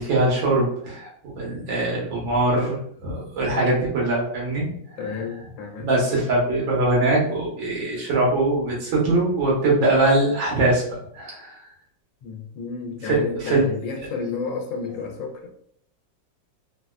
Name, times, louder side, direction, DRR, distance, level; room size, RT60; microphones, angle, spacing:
voice 1, 0.0-4.7 5.8-10.8 11.1-11.6 13.0-13.6, right 2 dB, 90° right, 1.8 m, -22 dB
voice 2, 5.0-5.9 12.2-15.5, left 5 dB, 80° left, 1.3 m, -31 dB
3.9 x 2.2 x 2.3 m
omnidirectional pair, 2.0 m